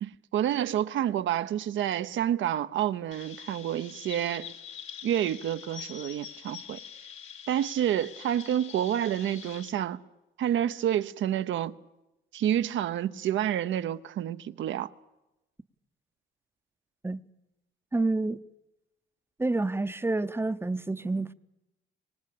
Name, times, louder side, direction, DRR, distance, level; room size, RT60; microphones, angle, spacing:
voice 1, 0.0-4.5 5.0-6.8 7.5-10.0 10.4-11.8 12.3-14.9, right 11 dB, 75° right, 0.8 m, -29 dB
Chirp tweet, 3.1-9.7, left 8 dB, 80° left, 2.4 m, -45 dB
voice 2, 17.9-18.4 19.4-21.3, right 2 dB, 10° right, 0.7 m, -28 dB
24.0 x 19.0 x 8.5 m
cardioid pair, 90°, 20 cm